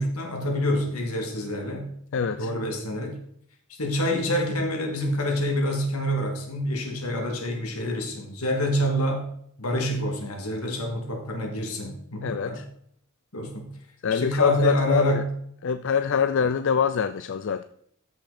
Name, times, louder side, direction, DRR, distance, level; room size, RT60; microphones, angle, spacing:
voice 1, 0.0-3.2 3.8-9.3 9.6-12.6 13.3-13.7 14.1-15.3, equal, 80° left, 2 dB, 2.3 m, -27 dB
voice 2, 2.1-2.5 12.2-12.7 14.0-15.2 15.6-17.6, left 7 dB, 55° left, 10 dB, 0.4 m, -24 dB
13.5 x 6.0 x 4.2 m, 0.69 s
head